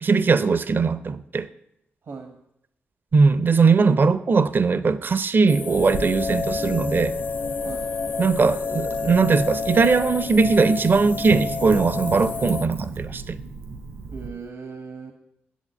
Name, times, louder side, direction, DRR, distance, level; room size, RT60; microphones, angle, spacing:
voice 1, 0.0-1.5 3.1-7.2 8.2-13.4, right 4 dB, 50° right, 0.6 m, -20 dB
voice 2, 2.0-2.4 7.6-7.9 14.1-15.1, right 5 dB, 70° right, 1.2 m, -38 dB
sound 1, 5.5-12.7, left 5 dB, 45° left, 0.4 m, -32 dB
Wind instrument woodwind instrument, 5.7-10.4, left 5 dB, 70° left, 1.0 m, -31 dB
Wind / Fire, 5.7-14.3, right 4 dB, 90° right, 3.5 m, -36 dB
8.0 x 7.3 x 8.3 m
cardioid pair, 55°, 4 cm